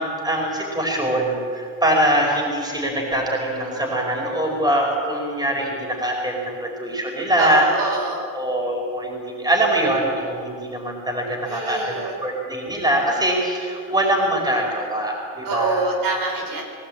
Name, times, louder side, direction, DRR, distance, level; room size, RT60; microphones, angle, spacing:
voice 1, 0.0-7.7 8.3-15.9, right 1 dB, 10° right, -1 dB, 5.3 m, -23 dB
voice 2, 7.4-8.3 11.5-12.2 15.4-16.6, right 2 dB, 75° right, 1 dB, 4.9 m, -25 dB
21.0 x 17.5 x 8.9 m, 2.2 s
cardioid pair, 155°, 34 cm